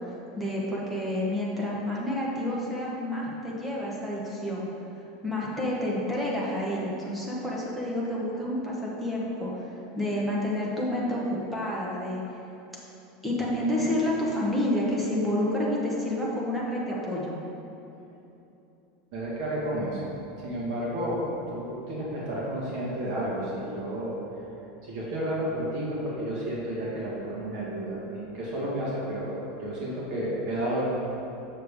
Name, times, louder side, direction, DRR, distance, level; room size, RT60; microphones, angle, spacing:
voice 1, 0.0-4.7 5.2-12.2 13.2-17.4, left 1 dB, ahead, -5 dB, 0.9 m, -29 dB
voice 2, 19.1-20.1 20.4-21.2 21.5-24.1 24.8-30.9, right 1 dB, 40° right, -6 dB, 1.5 m, -31 dB
6.6 x 6.5 x 3.5 m, 2.9 s
supercardioid pair, 175°, 0 cm